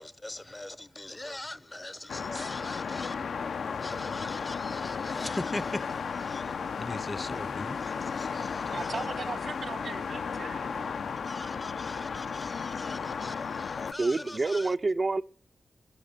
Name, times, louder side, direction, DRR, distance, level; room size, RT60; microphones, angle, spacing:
voice 1, 0.0-3.2 3.8-9.1 11.2-14.8, left 2 dB, 20° left, 0.6 m, -41 dB
sound 1, 2.1-13.9, left 6 dB, 80° left, 0.7 m, -34 dB
voice 2, 8.7-11.0, right 5 dB, 65° right, 1.5 m, -39 dB
voice 3, 14.0-15.2, right 3 dB, 40° right, 0.5 m, -28 dB
16.5 x 6.6 x 8.8 m
wide cardioid pair, 90°, 0 cm